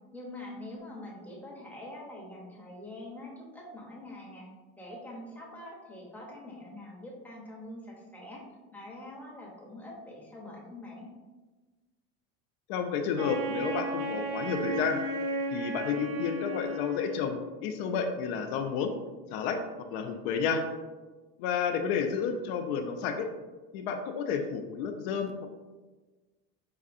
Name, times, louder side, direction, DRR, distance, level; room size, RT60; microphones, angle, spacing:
voice 1, 0.1-4.5 4.8-8.4 8.7-11.1, left 1 dB, 5° left, -3 dB, 0.7 m, -44 dB
voice 2, 12.7-15.0 15.5-17.4 17.6-18.9 19.3-19.6 19.9-20.6 21.4-23.2 23.7-25.5, left 6 dB, 85° left, 5 dB, 0.5 m, -31 dB
Wind instrument woodwind instrument, 13.2-17.5, right 1 dB, 75° right, 0.8 m, -34 dB
4.8 x 2.6 x 2.5 m, 1.3 s
cardioid pair, 140°, 31 cm